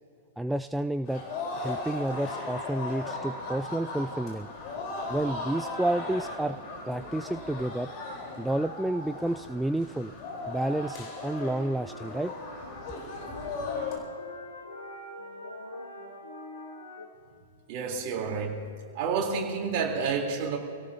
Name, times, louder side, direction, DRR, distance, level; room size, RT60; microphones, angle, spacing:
voice 1, 0.4-1.2 1.5-4.5 5.1-6.6 6.9-7.9 8.4-10.1 10.5-12.3, right 1 dB, 5° right, 10 dB, 0.3 m, -30 dB
sound 1, 1.0-14.0, left 3 dB, 35° left, 4.1 m, -37 dB
sound 2, 11.2-17.1, left 1 dB, 75° left, 2.2 m, -44 dB
voice 2, 17.7-18.7 18.9-20.6, right 5 dB, 40° right, 0 dB, 3.7 m, -29 dB
28.0 x 17.5 x 2.9 m, 2.5 s
figure-of-eight pair, 105°, 0 cm